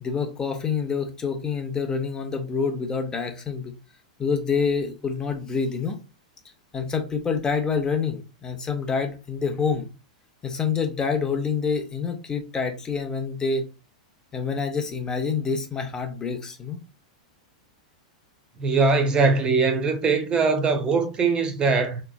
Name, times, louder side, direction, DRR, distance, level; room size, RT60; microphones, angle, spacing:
voice 1, 0.0-3.7 4.2-6.0 6.7-9.9 10.4-13.6 14.3-16.8, left 5 dB, 20° left, 0.6 m, -27 dB
voice 2, 18.6-22.0, right 4 dB, 25° right, 0.6 m, -21 dB
3.5 x 3.0 x 2.2 m
hypercardioid pair, 105°, 4 cm